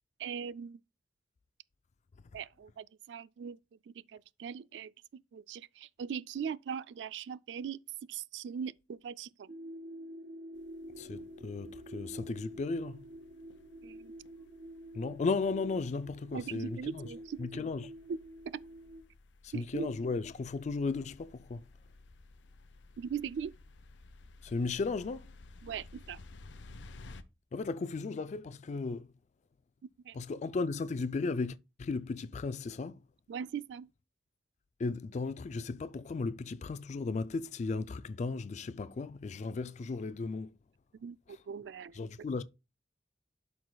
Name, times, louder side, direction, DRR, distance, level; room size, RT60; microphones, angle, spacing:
voice 1, 0.2-0.8 2.3-3.6 3.9-7.8 8.1-9.5 13.8-14.1 16.3-17.4 18.5-18.6 19.5-19.9 23.0-23.5 25.6-26.2 30.0-30.2 33.3-33.9 41.0-42.0, right 7 dB, 75° right, 0.3 m, -40 dB
sound 1, 9.5-19.0, equal, 45° right, 3.5 m, -48 dB
sound 2, 10.5-27.2, left 3 dB, 80° left, 0.6 m, -56 dB
voice 2, 10.9-13.1 14.9-17.1 17.4-17.9 19.4-21.7 24.4-25.3 27.5-29.1 30.1-33.0 34.8-40.6 41.3-41.4 41.9-42.4, left 4 dB, 40° left, 0.3 m, -35 dB
12.0 x 4.7 x 2.2 m
head